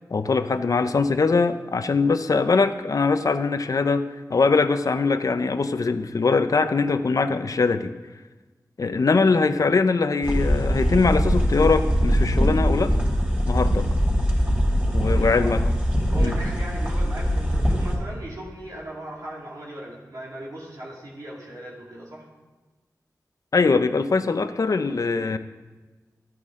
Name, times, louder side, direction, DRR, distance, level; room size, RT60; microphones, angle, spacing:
voice 1, 0.1-4.0 4.3-7.9 8.8-12.9 13.5-13.9 14.9-15.6 16.2-16.3 23.5-25.4, left 4 dB, 60° left, 10 dB, 0.6 m, -22 dB
sound 1, 10.2-18.0, equal, 20° right, 3.5 m, -22 dB
voice 2, 15.0-15.6 16.1-22.3, right 1 dB, 60° right, -5 dB, 2.2 m, -38 dB
13.5 x 9.3 x 3.7 m, 1.2 s
wide cardioid pair, 75°, 7 cm